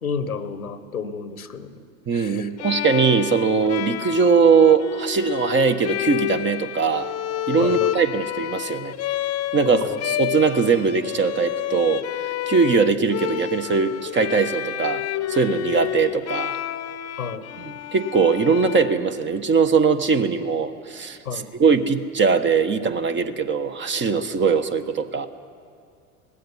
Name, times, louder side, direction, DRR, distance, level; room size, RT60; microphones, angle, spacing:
voice 1, 0.0-1.8 2.1-2.5 7.6-7.9 9.7-10.0 17.2-17.5 21.2-21.5, left 6 dB, 90° left, 11 dB, 1.4 m, -30 dB
voice 2, 2.1-7.1 7.5-8.9 9.5-12.0 12.5-16.6 17.6-25.3, right 5 dB, 25° right, 8 dB, 1.3 m, -21 dB
Bowed string instrument, 2.6-19.5, left 13 dB, 35° left, 1.0 m, -29 dB
19.0 x 16.0 x 9.9 m, 2.3 s
hypercardioid pair, 85°, 42 cm